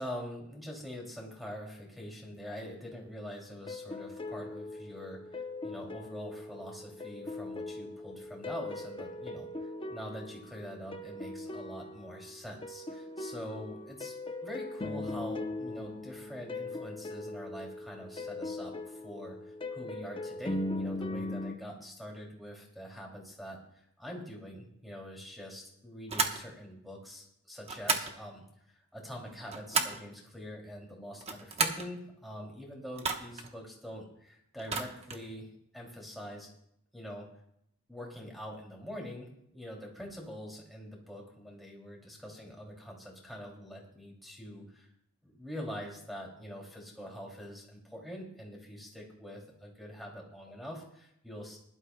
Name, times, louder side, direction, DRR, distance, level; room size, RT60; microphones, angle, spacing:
voice 1, 0.0-14.2 14.4-35.5 35.7-36.5 36.9-37.3 37.9-44.9 45.2-51.6, equal, ahead, -1 dB, 2.6 m, -44 dB
sound 1, 3.7-21.6, left 2 dB, 25° left, 0.6 m, -40 dB
sound 2, 26.1-26.4 27.6-28.1 29.2-30.1 31.1-31.9 33.0-33.5 34.6-35.3, right 4 dB, 30° right, 1.0 m, -33 dB
21.0 x 11.5 x 2.2 m, 0.75 s
head